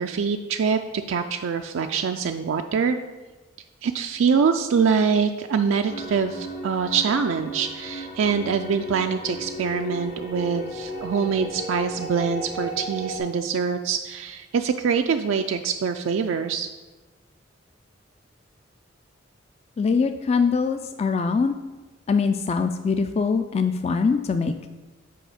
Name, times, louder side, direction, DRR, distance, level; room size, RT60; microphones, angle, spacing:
voice 1, 0.0-3.0 3.8-16.7, right 6 dB, 80° right, 6 dB, 0.4 m, -24 dB
sound 1, 5.9-13.2, equal, 55° left, 2.0 m, -35 dB
voice 2, 19.8-21.5 22.1-24.5, left 5 dB, 35° left, 8 dB, 0.3 m, -23 dB
7.7 x 4.6 x 5.0 m, 1.2 s
head